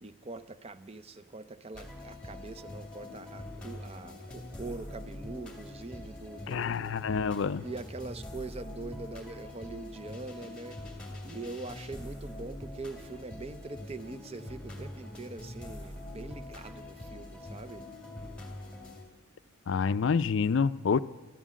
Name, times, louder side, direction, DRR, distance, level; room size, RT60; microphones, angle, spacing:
voice 1, 0.0-7.2 7.6-10.8 11.2-17.8, right 3 dB, 30° right, 13 dB, 0.5 m, -43 dB
sound 1, 1.7-19.0, left 1 dB, 5° left, 2.3 m, -44 dB
voice 2, 6.5-7.6 19.7-21.0, left 5 dB, 60° left, 16 dB, 0.4 m, -27 dB
13.5 x 12.5 x 7.5 m, 1.4 s
head